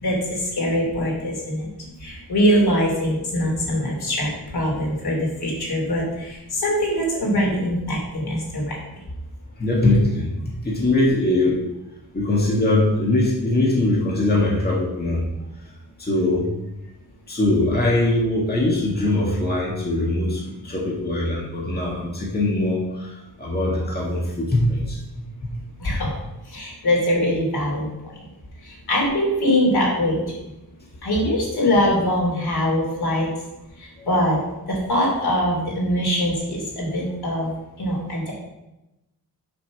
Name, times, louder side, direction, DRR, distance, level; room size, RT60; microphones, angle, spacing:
voice 1, 0.0-1.7 2.0-8.8 25.8-26.1 26.4-28.2 28.6-30.4 31.0-33.3 33.8-37.5 37.8-38.3, equal, 75° left, -2 dB, 3.2 m, -23 dB
voice 2, 9.6-11.6 12.1-15.3 15.6-15.7 16.0-16.5 17.3-25.0 25.4-25.5 34.0-34.1, left 2 dB, 25° left, -4 dB, 1.9 m, -21 dB
6.6 x 5.7 x 6.2 m, 0.94 s
wide cardioid pair, 170°, 38 cm